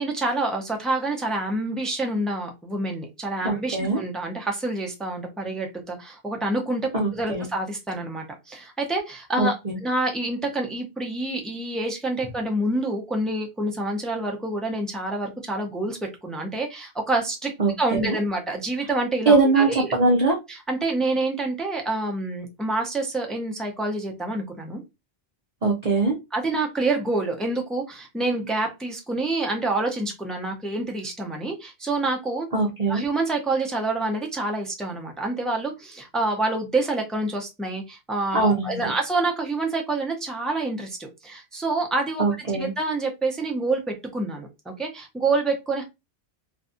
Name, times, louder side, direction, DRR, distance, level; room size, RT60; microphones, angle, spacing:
voice 1, 0.0-6.8 7.1-9.5 9.8-17.5 17.8-19.9 20.5-24.8 26.3-32.5 32.9-42.2 42.5-45.8, right 2 dB, ahead, 2 dB, 0.4 m, -27 dB
voice 2, 3.4-4.0 6.9-7.5 9.4-9.7 17.6-18.2 19.3-20.4 25.6-26.2 32.5-33.0 38.3-38.8 42.2-42.7, right 3 dB, 40° right, -3 dB, 0.7 m, -22 dB
2.6 x 2.3 x 2.5 m, 0.23 s
omnidirectional pair, 1.1 m